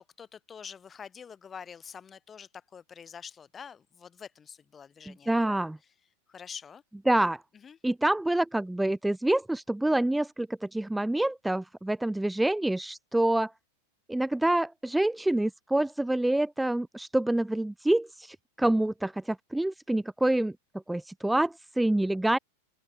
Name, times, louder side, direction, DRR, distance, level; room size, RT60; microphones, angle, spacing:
voice 1, 0.0-5.6 6.3-6.8 7.6-7.8, left 7 dB, 20° left, 4.9 m, -46 dB
voice 2, 5.1-5.8 7.1-7.4 7.8-13.5 14.1-20.5 20.9-22.4, right 1 dB, 5° right, 1.9 m, -27 dB
open air
figure-of-eight pair, 90°, 0 cm